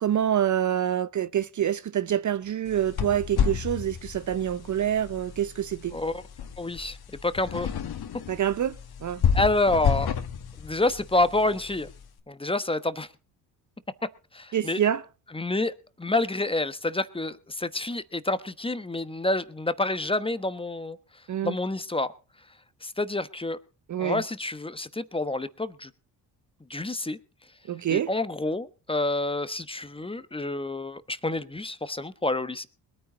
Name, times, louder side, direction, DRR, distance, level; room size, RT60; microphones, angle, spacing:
voice 1, 0.0-6.0 8.3-9.2 14.5-15.0 21.3-21.5 23.9-24.2 27.7-28.1, right 10 dB, 40° right, 0.6 m, -26 dB
sound 1, 2.7-12.0, left 7 dB, 55° left, 1.7 m, -31 dB
voice 2, 5.9-6.2 6.6-7.0 7.2-7.7 9.3-10.2 10.6-11.9 12.3-13.1 14.3-14.8 15.3-15.7 16.0-21.0 21.4-22.1 22.8-23.6 24.0-25.9 26.7-27.2 27.9-32.7, left 2 dB, 10° left, 1.1 m, -28 dB
21.0 x 9.4 x 3.9 m
supercardioid pair, 65°, 44 cm